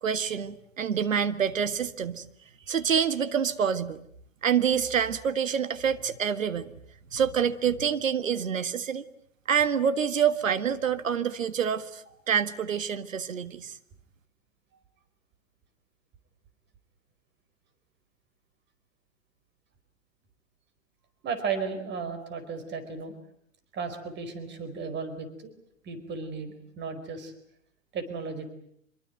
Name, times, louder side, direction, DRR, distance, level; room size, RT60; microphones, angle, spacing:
voice 1, 0.0-2.2 2.7-4.0 4.4-6.7 7.1-9.0 9.5-13.8, right 7 dB, 75° right, 12 dB, 1.8 m, -27 dB
voice 2, 21.2-23.1 23.7-25.6 25.8-27.3 27.9-28.5, right 5 dB, 25° right, 10 dB, 4.7 m, -34 dB
25.5 x 23.0 x 9.2 m, 0.69 s
hypercardioid pair, 110°, 39 cm